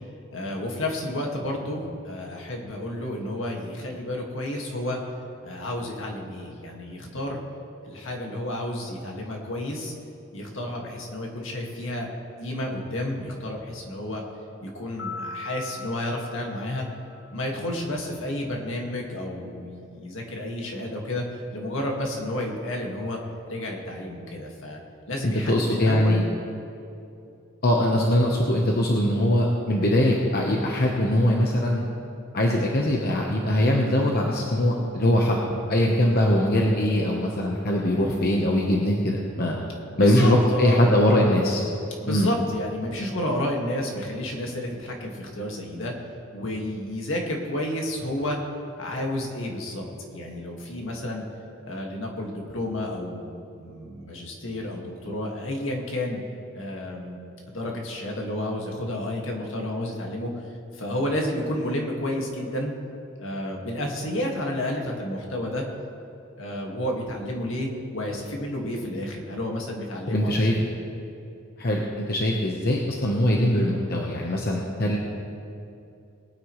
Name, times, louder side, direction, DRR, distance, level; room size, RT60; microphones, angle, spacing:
voice 1, 0.3-5.0 5.4-7.4 7.8-9.9 10.3-12.1 12.4-14.2 14.6-16.9 17.3-21.3 21.5-23.2 23.5-24.8 25.1-26.2 39.9-40.9 42.0-45.9 46.3-48.4 48.8-49.8 50.1-51.2 51.7-56.2 56.5-57.2 57.5-60.3 60.7-62.7 63.2-65.6 66.4-70.6, left 1 dB, 70° left, 0 dB, 1.9 m, -31 dB
sound 1, 15.0-17.5, left 3 dB, 90° left, 1.6 m, -39 dB
voice 2, 25.2-26.2 27.6-31.8 32.3-35.4 35.7-39.6 40.0-41.6 42.1-42.3 70.1-70.6 71.6-75.0, left 1 dB, 50° left, -1 dB, 1.0 m, -22 dB
22.0 x 9.5 x 3.2 m, 2.7 s
head